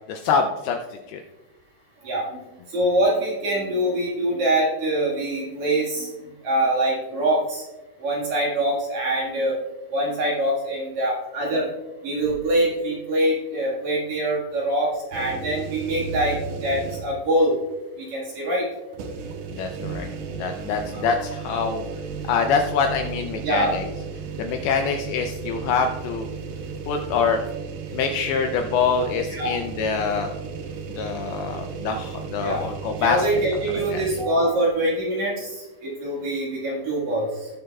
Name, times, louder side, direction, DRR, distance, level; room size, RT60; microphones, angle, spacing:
voice 1, 0.1-0.8 1.1-1.2 19.5-20.1 20.4-21.8 22.3-23.8 24.4-26.3 26.9-27.4 27.9-30.3 31.0-33.3 33.9-34.0, left 5 dB, 80° left, 4 dB, 2.3 m, -25 dB
voice 2, 2.7-6.1 6.4-7.6 8.0-9.5 9.9-11.7 12.0-17.6 18.0-18.7 20.9-21.1 23.4-23.9 29.3-29.5 32.4-32.6 33.0-37.5, right 1 dB, 55° right, -5 dB, 2.6 m, -24 dB
sound 1, 15.1-17.3 17.7-17.8 18.9-34.3, right 5 dB, 90° right, 3.2 m, -34 dB
18.0 x 6.6 x 2.3 m, 1.1 s
omnidirectional pair, 4.9 m